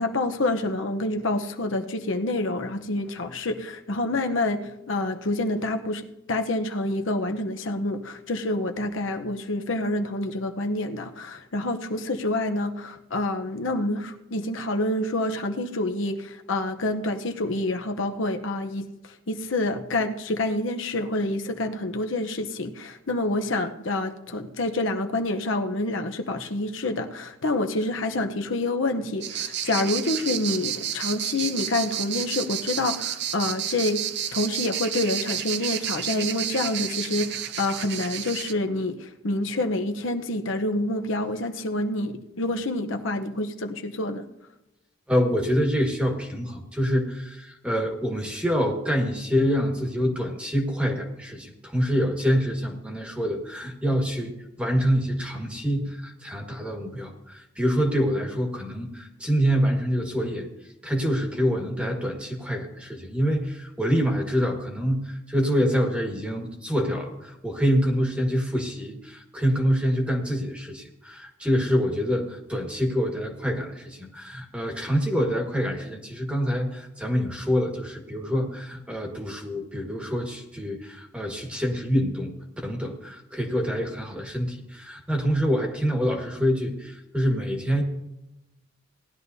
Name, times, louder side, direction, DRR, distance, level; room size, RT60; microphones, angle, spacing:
voice 1, 0.0-4.6 4.9-34.0 34.3-44.2, left 2 dB, 70° left, 5 dB, 0.8 m, -27 dB
sound 1, 29.2-38.5, right 10 dB, 55° right, 0.5 m, -31 dB
voice 2, 45.1-54.3 54.6-60.5 60.8-87.8, equal, 5° right, 2 dB, 1.5 m, -26 dB
18.0 x 11.5 x 2.7 m, 0.92 s
head